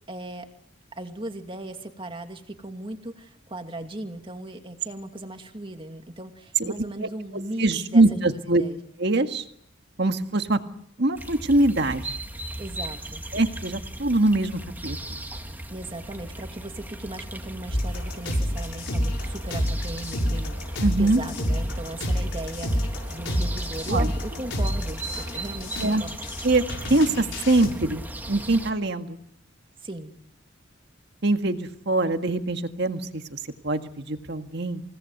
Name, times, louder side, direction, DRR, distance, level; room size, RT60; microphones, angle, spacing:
voice 1, 0.1-0.5 0.9-8.8 12.6-13.2 15.7-26.2 29.8-30.2, right 1 dB, 25° right, 5 dB, 2.5 m, -37 dB
voice 2, 7.6-8.6 9.0-9.4 10.0-10.6 11.0-12.2 13.3-15.2 20.8-21.2 23.9-24.1 25.8-26.0 26.4-26.6 26.9-28.0 28.3-29.2 31.2-34.8, right 2 dB, 55° right, 7 dB, 1.8 m, -23 dB
sound 1, 11.2-28.7, right 1 dB, 10° right, 2.1 m, -37 dB
sound 2, 17.7-27.7, equal, 65° left, 6.5 m, -28 dB
29.0 x 18.5 x 8.0 m, 0.69 s
head